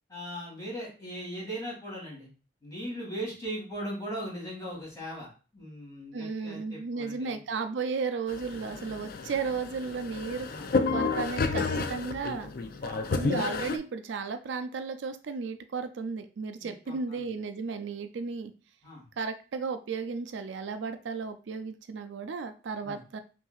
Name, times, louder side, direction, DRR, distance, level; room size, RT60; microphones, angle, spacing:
voice 1, 0.1-2.3 2.6-7.4 10.5-10.7 12.8-13.1 16.6-17.2 18.8-19.1 22.8-23.0, equal, 20° left, -5 dB, 2.1 m, -39 dB
voice 2, 6.1-10.5 10.9-12.5 13.1-18.5 19.2-23.2, right 5 dB, 75° right, 9 dB, 0.4 m, -34 dB
sound 1, 8.3-13.8, left 4 dB, 50° left, 0.4 m, -31 dB
5.6 x 2.6 x 2.4 m, 0.35 s
head